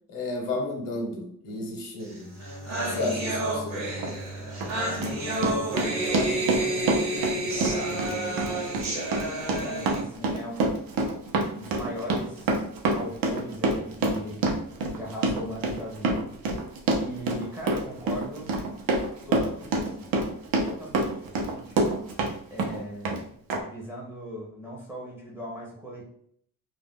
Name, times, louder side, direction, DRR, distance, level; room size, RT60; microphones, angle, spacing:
voice 1, 0.1-2.3 2.9-4.1, left 2 dB, 65° left, 1 dB, 0.8 m, -32 dB
sound 1, 2.1-2.2 2.4-10.0, right 1 dB, 50° right, 0.9 m, -30 dB
Bowed string instrument, 2.2-6.8, right 1 dB, 45° left, 0.5 m, -43 dB
Run, 4.0-4.1 4.6-22.3 22.6-23.2 23.5-23.6, right 2 dB, 80° right, 0.6 m, -27 dB
voice 2, 4.9-9.0 9.6-10.8 11.5-12.6 12.9-14.4 15.0-16.3 17.0-18.7 19.3-20.3 20.6-21.8 22.5-23.3 23.6-26.0, equal, 5° right, -4 dB, 0.5 m, -39 dB
2.4 x 2.1 x 3.5 m, 0.65 s
wide cardioid pair, 175°, 34 cm